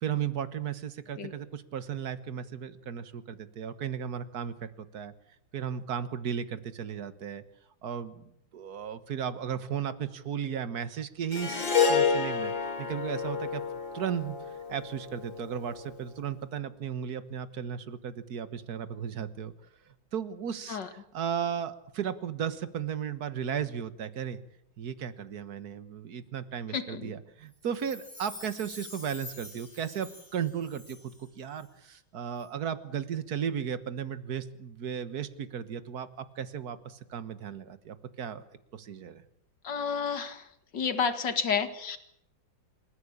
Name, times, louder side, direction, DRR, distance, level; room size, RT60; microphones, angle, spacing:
voice 1, 0.0-5.1 5.5-7.4 7.8-8.2 8.5-13.6 13.9-19.5 19.9-24.4 24.8-38.4 38.7-39.2, right 8 dB, 55° right, 12 dB, 1.8 m, -35 dB
Harp, 11.3-15.7, left 6 dB, 85° left, 3.7 m, -29 dB
voice 2, 26.7-27.1 39.6-40.4 40.7-42.0, left 6 dB, 70° left, 8 dB, 2.5 m, -30 dB
Chime, 27.6-31.3 31.6-31.7, left 2 dB, 15° left, 4.6 m, -47 dB
27.0 x 14.5 x 8.8 m, 0.73 s
omnidirectional pair, 2.0 m